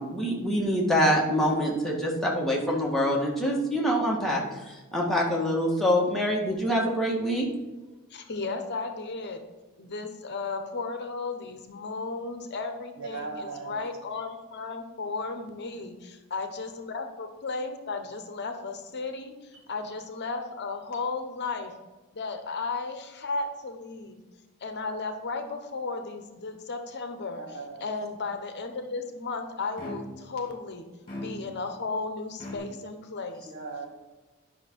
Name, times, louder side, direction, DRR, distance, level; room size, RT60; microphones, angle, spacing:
voice 1, 0.0-4.4 4.9-7.5, equal, ahead, -3 dB, 1.7 m, -25 dB
voice 2, 8.1-9.4 9.8-21.7 22.1-24.2 24.6-27.4 27.8-30.8 31.2-33.5, left 3 dB, 50° left, 6 dB, 1.0 m, -34 dB
voice 3, 13.0-13.9 27.4-27.8 33.4-33.9, right 4 dB, 60° right, 0 dB, 2.1 m, -38 dB
sound 1, 29.8-30.3 31.1-31.7 32.4-32.6, left 1 dB, 25° left, 2.7 m, -38 dB
10.5 x 5.8 x 4.6 m, 1.2 s
head